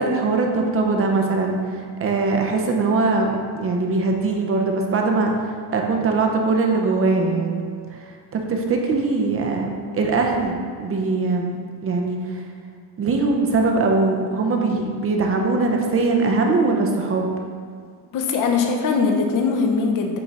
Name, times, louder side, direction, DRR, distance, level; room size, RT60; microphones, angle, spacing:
voice 1, 0.0-7.6 8.3-9.7 9.9-11.6 11.8-12.4 13.0-17.3, right 3 dB, 30° right, 2 dB, 0.6 m, -21 dB
voice 2, 18.1-20.2, left 4 dB, 40° left, 3 dB, 0.8 m, -21 dB
8.6 x 3.7 x 4.1 m, 2.1 s
cardioid pair, 150°, 49 cm